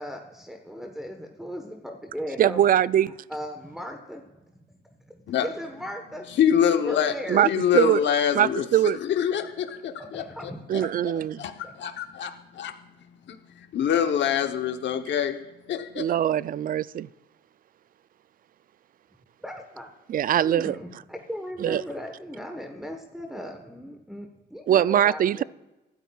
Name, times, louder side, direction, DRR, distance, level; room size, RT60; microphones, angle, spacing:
voice 1, 0.0-2.6 3.3-4.2 4.5-6.3 6.8-7.5 10.0-10.6 11.6-11.7 19.4-19.9 20.4-25.4, equal, ahead, 1.2 m, -37 dB
voice 2, 2.4-3.1 7.3-8.0 8.3-9.0 10.7-11.4 16.0-17.1 20.1-20.8 21.6-21.8 24.7-25.4, right 11 dB, 45° right, 0.4 m, -22 dB
voice 3, 6.4-7.1 7.5-10.8 11.4-12.7 13.3-15.4 15.7-16.1, left 9 dB, 65° left, 0.9 m, -25 dB
24.5 x 13.0 x 2.4 m
cardioid pair, 90°, 20 cm